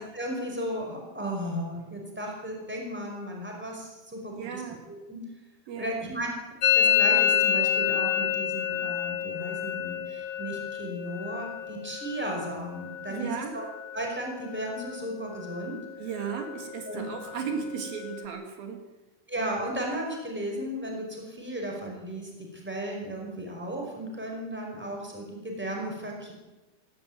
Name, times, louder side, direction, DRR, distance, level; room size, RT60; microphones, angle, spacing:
voice 1, 0.0-4.6 5.1-5.2 5.8-6.3 6.7-13.6 13.9-15.8 16.9-17.0 19.3-26.3, right 1 dB, 5° right, 0 dB, 4.9 m, -35 dB
voice 2, 4.3-4.8 5.7-6.0 13.1-13.5 16.0-18.8, right 6 dB, 70° right, 4 dB, 3.7 m, -35 dB
Musical instrument, 6.6-14.3 14.5-15.1 15.4-15.9 16.2-18.2, left 10 dB, 75° left, 1.8 m, -29 dB
17.0 x 16.5 x 9.4 m, 1.1 s
omnidirectional pair, 4.4 m